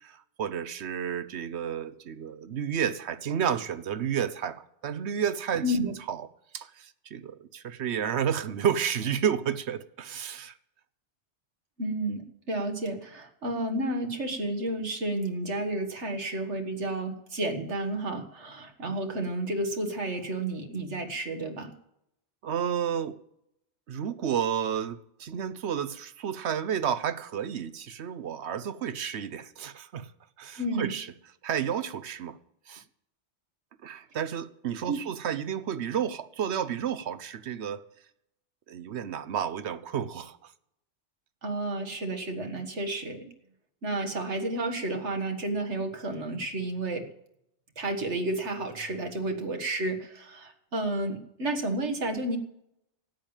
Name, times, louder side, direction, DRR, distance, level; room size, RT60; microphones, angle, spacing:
voice 1, 0.0-6.3 6.5-10.5 22.4-23.2 23.9-30.1 30.4-31.1 31.4-32.4 32.7-32.8 33.8-37.8 38.7-40.5, right 8 dB, 75° right, 1.0 m, -31 dB
voice 2, 5.6-5.9 11.8-21.7 30.6-30.9 34.9-35.0 41.4-43.3 43.8-47.1 47.8-52.4, right 1 dB, 90° right, 2.0 m, -31 dB
13.0 x 8.9 x 8.9 m
omnidirectional pair, 1.1 m